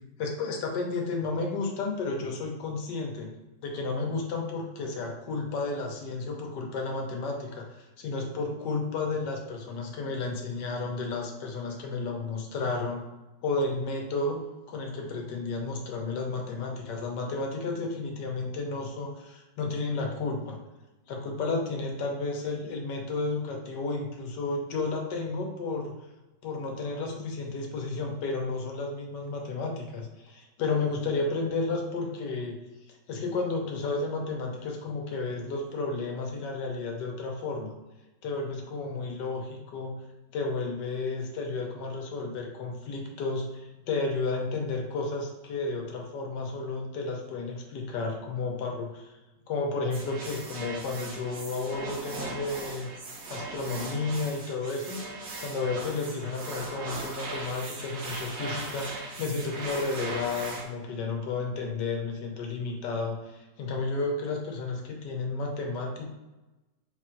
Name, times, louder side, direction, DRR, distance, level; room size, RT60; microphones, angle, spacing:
voice 1, 0.2-3.3 3.6-13.0 13.4-14.4 14.7-20.6 21.1-26.0 26.4-32.6 33.1-37.7 38.2-40.0 40.3-49.1 49.5-52.9 53.3-55.0 55.4-66.1, left 3 dB, 85° left, 1 dB, 1.4 m, -32 dB
sound 1, 49.9-60.6, right 2 dB, 70° right, 1.3 m, -38 dB
3.9 x 2.5 x 4.4 m, 1.1 s
omnidirectional pair, 1.8 m